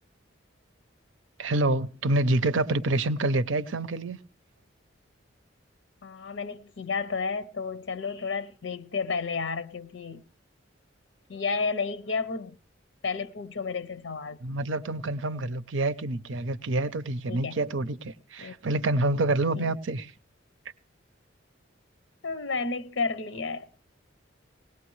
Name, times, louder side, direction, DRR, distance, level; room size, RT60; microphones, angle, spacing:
voice 1, 1.4-4.2 14.4-20.1, right 2 dB, 85° right, 0.6 m, -27 dB
voice 2, 6.0-10.2 11.3-12.6 13.0-14.6 17.3-17.6 18.4-18.6 19.5-19.7 22.2-23.8, left 4 dB, 80° left, 0.7 m, -32 dB
20.5 x 18.0 x 3.1 m
head